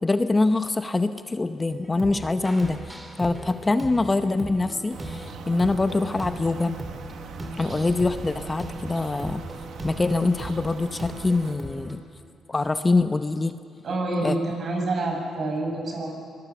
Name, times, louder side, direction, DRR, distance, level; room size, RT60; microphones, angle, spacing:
voice 1, 0.0-6.8 7.6-9.4 9.8-12.0 12.5-13.5 14.2-14.4, left 3 dB, 20° left, 10 dB, 0.8 m, -24 dB
sound 1, 1.7-12.0, equal, 10° right, 3.0 m, -38 dB
sound 2, 4.9-11.6, right 7 dB, 70° right, 1.4 m, -41 dB
voice 2, 13.8-16.1, right 2 dB, 55° right, 1 dB, 6.4 m, -27 dB
23.0 x 20.5 x 7.1 m, 2.3 s
cardioid pair, 90°, 0 cm